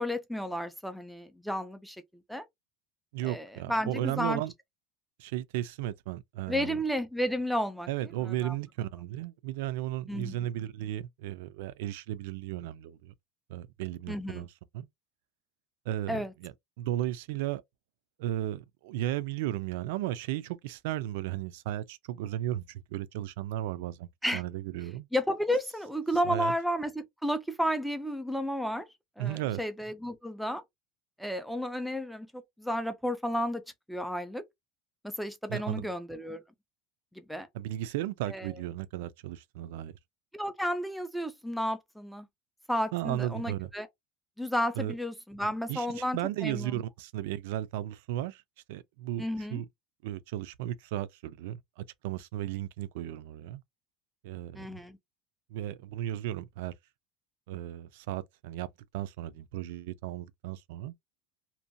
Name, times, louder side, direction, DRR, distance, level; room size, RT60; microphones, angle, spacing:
voice 1, 0.0-2.0 2.3-2.4 3.2-4.4 6.5-7.9 8.2-8.5 10.1-10.5 14.1-14.5 16.1-16.3 24.2-24.4 25.1-28.9 29.2-30.6 31.2-33.6 33.9-34.4 35.0-36.4 37.1-37.5 38.3-38.5 40.3-42.3 42.7-43.9 44.4-46.8 49.2-49.6 54.5-55.0, equal, ahead, 0.3 m, -32 dB
voice 2, 3.1-4.5 5.2-6.8 7.9-13.1 13.5-14.9 15.9-17.6 18.2-25.1 26.2-26.5 29.2-29.6 35.5-35.9 37.5-39.9 42.9-43.7 44.8-44.9 45.7-48.4 48.7-49.2 49.5-49.7 50.0-53.6 54.2-54.8 55.5-56.7 57.5-58.7 58.9-60.9, right 13 dB, 85° right, 0.3 m, -35 dB
2.6 x 2.2 x 2.5 m
cardioid pair, 175°, 0 cm